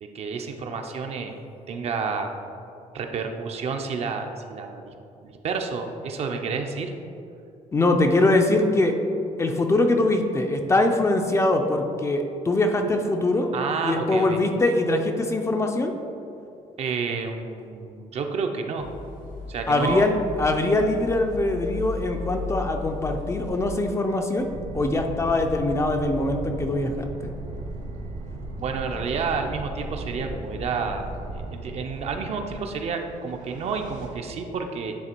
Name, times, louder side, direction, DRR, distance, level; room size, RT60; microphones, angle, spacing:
voice 1, 0.0-1.4 1.7-2.3 2.9-4.9 5.2-6.9 13.5-14.4 16.8-18.9 19.5-20.1 28.6-31.0 31.3-34.9, right 5 dB, 50° right, 4 dB, 0.6 m, -30 dB
voice 2, 7.7-9.0 9.4-13.5 13.8-15.9 19.7-24.5 24.7-27.3, left 2 dB, 20° left, 4 dB, 0.4 m, -22 dB
sound 1, 18.8-23.9, left 4 dB, 65° left, 1.0 m, -36 dB
sound 2, 24.4-34.1, right 2 dB, 70° right, 1.4 m, -36 dB
9.5 x 3.3 x 4.4 m, 2.6 s
cardioid pair, 140°, 14 cm